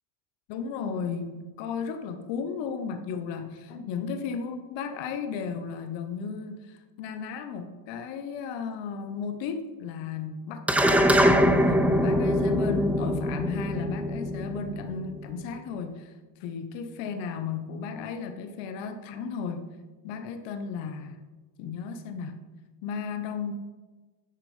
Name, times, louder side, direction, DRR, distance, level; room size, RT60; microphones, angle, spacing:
voice 1, 0.5-10.7 11.3-16.1 16.4-19.8 20.0-21.2 21.6-22.4 22.8-23.5, left 6 dB, 75° left, 6 dB, 1.2 m, -34 dB
sound 1, 10.7-15.3, equal, 5° right, 0.7 m, -23 dB
10.0 x 6.8 x 5.5 m, 1.3 s
cardioid pair, 130°, 45 cm